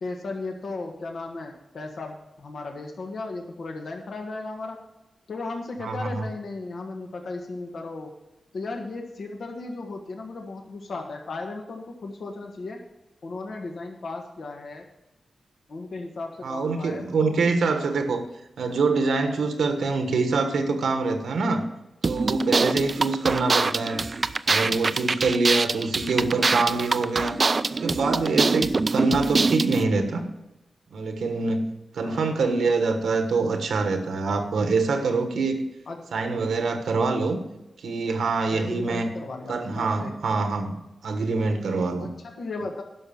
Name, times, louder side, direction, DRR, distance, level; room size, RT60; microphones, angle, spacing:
voice 1, 0.0-4.8 5.3-8.1 8.5-12.8 13.2-14.8 15.7-17.4 32.0-32.8 35.9-36.0 38.5-40.1 42.0-42.8, left 3 dB, 70° left, 2 dB, 1.6 m, -35 dB
voice 2, 5.8-6.3 16.4-18.2 18.6-21.6 22.0-24.0 24.5-27.4 27.7-30.3 30.9-31.7 31.9-35.7 36.1-37.4 37.8-39.1 39.5-42.1, right 3 dB, 90° right, 6 dB, 1.4 m, -25 dB
sound 1, 22.0-29.8, right 3 dB, 45° right, 0.4 m, -24 dB
11.5 x 6.2 x 7.1 m, 0.93 s
cardioid pair, 75°, 0 cm